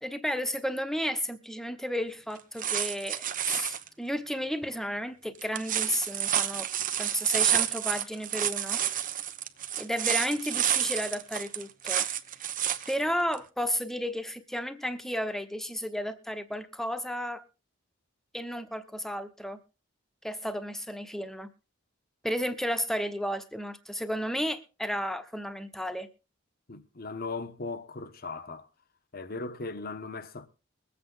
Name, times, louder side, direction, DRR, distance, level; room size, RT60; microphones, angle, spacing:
voice 1, 0.0-6.7 7.0-8.8 9.8-12.1 12.9-17.4 18.3-19.6 20.2-21.5 22.2-26.1, equal, ahead, 1.1 m, -33 dB
sound 1, 2.4-3.9 5.4-12.9 13.3-13.4, right 10 dB, 40° right, 0.9 m, -29 dB
voice 2, 26.7-28.7 29.1-30.5, left 3 dB, 50° left, 1.1 m, -38 dB
22.0 x 8.5 x 3.9 m
head